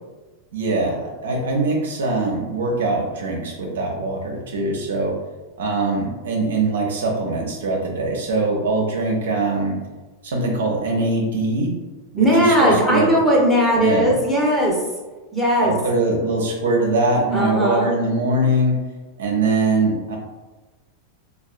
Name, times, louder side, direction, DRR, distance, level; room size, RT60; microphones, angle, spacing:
voice 1, 0.5-5.2 5.6-9.8 10.2-11.7 12.1-13.1 13.7-14.2 15.6-18.7 19.2-20.2, right 2 dB, 75° right, -1 dB, 0.6 m, -22 dB
voice 2, 12.2-14.7 15.3-15.7 17.3-17.9, equal, ahead, -5 dB, 0.9 m, -18 dB
3.4 x 2.4 x 2.5 m, 1.2 s
hypercardioid pair, 95°, 0 cm